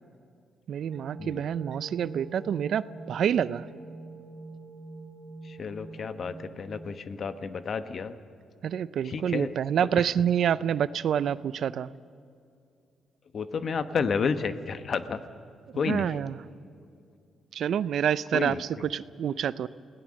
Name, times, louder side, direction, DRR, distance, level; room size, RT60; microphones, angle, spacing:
voice 1, 0.7-3.7 8.6-11.9 15.9-16.3 17.5-19.7, right 9 dB, 70° right, 17 dB, 0.5 m, -27 dB
sound 1, 0.9-6.9, right 3 dB, 35° right, 3.7 m, -44 dB
voice 2, 5.4-8.2 9.0-9.5 9.9-10.1 13.3-15.2 15.7-16.2 18.3-18.9, left 5 dB, 60° left, 10 dB, 1.1 m, -31 dB
28.0 x 17.5 x 6.5 m, 2.4 s
cardioid pair, 65°, 0 cm